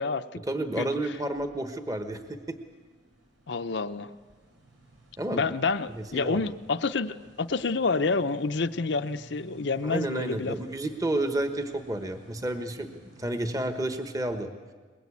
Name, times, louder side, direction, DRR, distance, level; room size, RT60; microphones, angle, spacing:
voice 1, 0.4-2.6 5.2-5.5 6.1-6.5 9.8-14.5, right 1 dB, 20° right, 7 dB, 1.2 m, -31 dB
sound 1, 1.2-13.8, right 2 dB, 85° right, 6.0 m, -53 dB
voice 2, 3.5-4.1 5.3-10.6, left 4 dB, 65° left, 9 dB, 0.7 m, -28 dB
22.0 x 21.5 x 8.5 m, 1.4 s
head